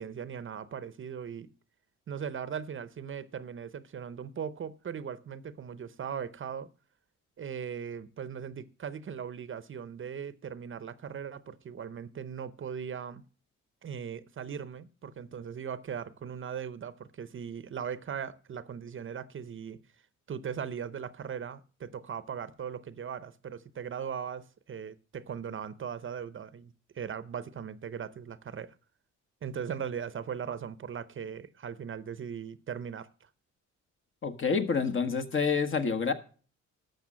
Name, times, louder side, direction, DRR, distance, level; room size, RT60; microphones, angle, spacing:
voice 1, 0.0-1.5 2.1-6.7 7.4-13.2 13.8-19.8 20.3-28.7 29.4-33.3, right 7 dB, 40° right, 0.7 m, -39 dB
voice 2, 34.2-36.1, left 5 dB, 40° left, 1.4 m, -28 dB
12.0 x 6.7 x 6.3 m
cardioid pair, 90°, 30 cm